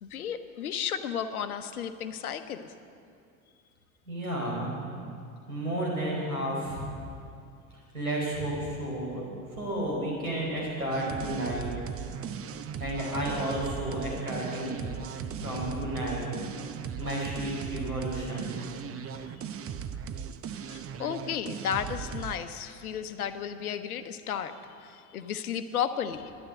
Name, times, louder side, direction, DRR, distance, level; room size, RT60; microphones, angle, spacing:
voice 1, 0.0-2.7 19.0-19.4 20.5-26.3, left 8 dB, 80° left, 10 dB, 0.9 m, -34 dB
voice 2, 4.0-4.7 5.5-6.8 7.9-9.2 9.5-11.7 12.0-12.1 12.8-14.9 15.4-16.3 17.0-18.6, right 1 dB, 90° right, -4 dB, 4.9 m, -32 dB
sound 1, 10.9-22.4, right 8 dB, 30° right, 0.8 m, -38 dB
12.5 x 11.0 x 9.1 m, 2.4 s
figure-of-eight pair, 70°, 43 cm